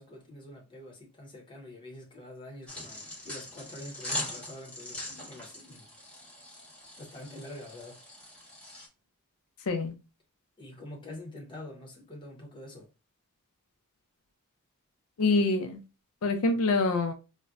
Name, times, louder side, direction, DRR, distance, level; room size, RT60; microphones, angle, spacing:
voice 1, 0.0-5.9 7.0-8.0 10.6-12.9, left 1 dB, 20° left, 0.8 m, -46 dB
sound 1, 2.7-8.9, left 1 dB, 5° left, 1.1 m, -41 dB
voice 2, 15.2-15.8 16.2-17.1, left 3 dB, 70° left, 0.5 m, -25 dB
4.0 x 2.1 x 2.3 m
head